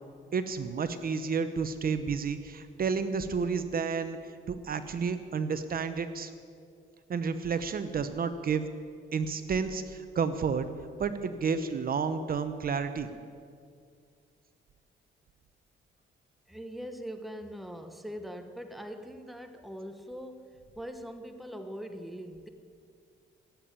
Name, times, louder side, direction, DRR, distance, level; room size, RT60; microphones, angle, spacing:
voice 1, 0.3-4.2 4.5-6.3 7.1-8.7 9.1-10.7 11.0-13.1, right 5 dB, 45° right, 11 dB, 0.9 m, -31 dB
voice 2, 16.5-22.5, equal, ahead, 7 dB, 1.1 m, -42 dB
16.0 x 8.7 x 8.8 m, 2.2 s
cardioid pair, 90°, 20 cm